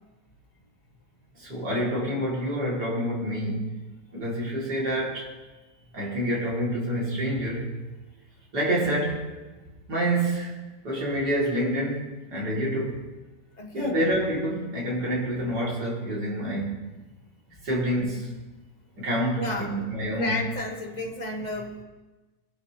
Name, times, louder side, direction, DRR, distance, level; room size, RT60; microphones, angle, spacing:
voice 1, 1.4-3.8 4.1-5.3 5.9-7.8 8.5-9.4 9.9-10.5 10.8-13.0 13.7-16.9 17.6-18.4 19.0-20.4, right 1 dB, 55° right, -5 dB, 4.4 m, -27 dB
voice 2, 13.6-14.0 19.4-19.7 20.2-21.8, left 2 dB, 20° left, 0 dB, 1.9 m, -32 dB
22.0 x 12.0 x 3.4 m, 1.2 s
omnidirectional pair, 2.1 m